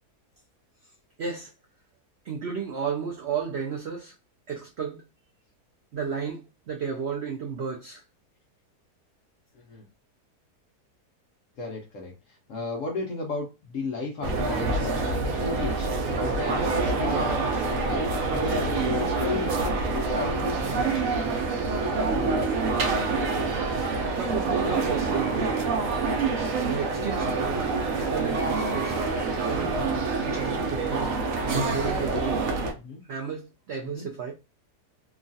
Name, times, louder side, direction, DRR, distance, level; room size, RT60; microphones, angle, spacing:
voice 1, 1.2-1.5 2.2-4.1 4.5-5.0 5.9-8.0 24.2-25.6 26.7-29.1 29.3-29.7 30.3-31.2 31.7-32.4 33.1-34.3, right 6 dB, 85° right, 0.5 m, -33 dB
voice 2, 11.6-15.9 16.2-21.0 27.8-28.0 32.8-33.0 33.8-34.1, left 3 dB, 65° left, 0.9 m, -34 dB
sound 1, 14.2-32.7, right 3 dB, 65° right, 0.9 m, -26 dB
3.0 x 2.3 x 2.6 m
omnidirectional pair, 1.7 m